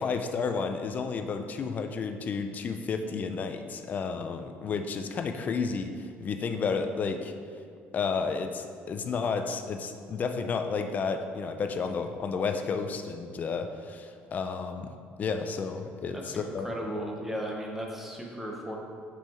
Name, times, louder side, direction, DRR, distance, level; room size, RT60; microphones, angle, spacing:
voice 1, 0.0-7.3 7.9-14.9 15.2-16.7, left 5 dB, 35° left, 6 dB, 0.4 m, -31 dB
voice 2, 16.1-18.8, equal, 5° right, -1 dB, 1.0 m, -36 dB
6.0 x 5.5 x 4.3 m, 2.3 s
cardioid pair, 145°, 5 cm